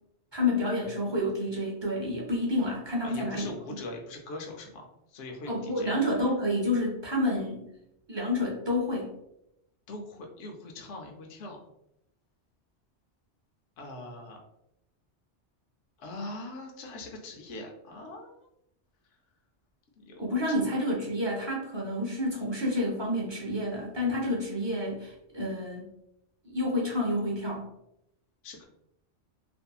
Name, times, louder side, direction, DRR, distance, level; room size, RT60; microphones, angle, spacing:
voice 1, 0.3-3.8 5.5-7.7 8.1-9.1 20.2-25.9 26.4-27.7, left 1 dB, 35° right, -3 dB, 0.4 m, -29 dB
voice 2, 3.0-5.9 9.9-11.6 13.8-14.4 16.0-18.3 20.0-20.4 28.4-28.7, left 2 dB, 80° left, 1 dB, 0.9 m, -42 dB
2.7 x 2.5 x 2.2 m, 0.80 s
omnidirectional pair, 1.2 m